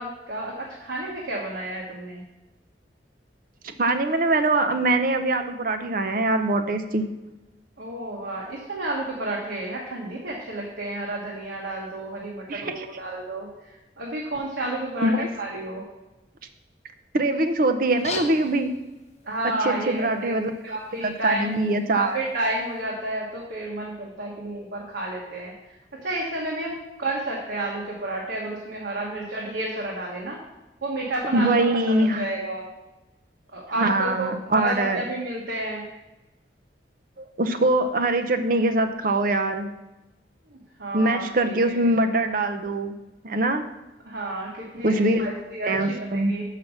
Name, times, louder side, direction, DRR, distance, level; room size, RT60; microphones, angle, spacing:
voice 1, 0.0-2.2 7.8-13.5 14.0-15.8 19.2-20.3 20.6-21.6 22.0-25.5 25.9-30.4 30.8-31.7 32.0-32.6 33.5-35.8 40.5-41.8 44.1-46.4, right 1 dB, 75° right, -3 dB, 1.4 m, -31 dB
voice 2, 3.8-7.1 12.5-12.9 15.0-15.3 17.1-18.7 19.6-20.5 21.0-22.2 31.3-32.3 33.8-35.0 37.2-39.7 40.9-42.9 43.2-43.7 44.8-45.3 45.6-46.3, right 2 dB, 50° right, 7 dB, 0.6 m, -23 dB
sound 1, 17.8-22.8, left 4 dB, 35° left, 0.9 m, -41 dB
6.1 x 5.8 x 6.4 m, 1.0 s
head